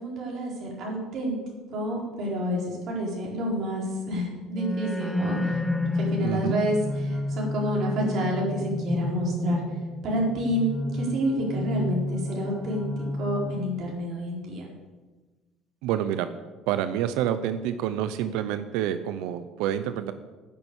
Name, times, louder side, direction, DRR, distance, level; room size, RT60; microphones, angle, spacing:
voice 1, 0.0-1.4 1.7-5.6 5.9-9.6 10.0-14.7, equal, 55° right, -2 dB, 4.5 m, -29 dB
sound 1, 4.5-13.8, left 1 dB, 5° left, 0.8 m, -30 dB
voice 2, 6.2-6.6 15.8-16.3 16.7-20.1, right 10 dB, 85° right, 11 dB, 0.6 m, -28 dB
10.0 x 7.0 x 8.2 m, 1.2 s
cardioid pair, 135°, 0 cm